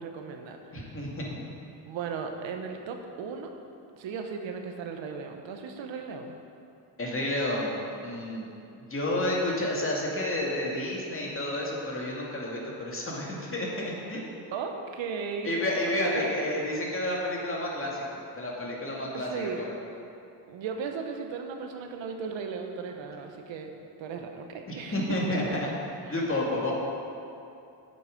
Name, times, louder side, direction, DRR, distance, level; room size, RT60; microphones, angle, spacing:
voice 1, 0.0-1.0 1.9-3.5 4.0-6.3 14.5-15.6 16.0-16.3 19.1-19.6 20.5-23.7 24.0-25.0 26.1-26.2, right 5 dB, 75° right, 4 dB, 1.0 m, -36 dB
voice 2, 0.7-1.4 7.0-7.8 8.0-8.5 8.9-14.2 15.4-18.0 18.3-19.7 24.7-25.7 26.1-26.7, left 1 dB, 30° left, -3 dB, 2.3 m, -30 dB
8.0 x 7.9 x 5.2 m, 2.7 s
cardioid pair, 85°, 46 cm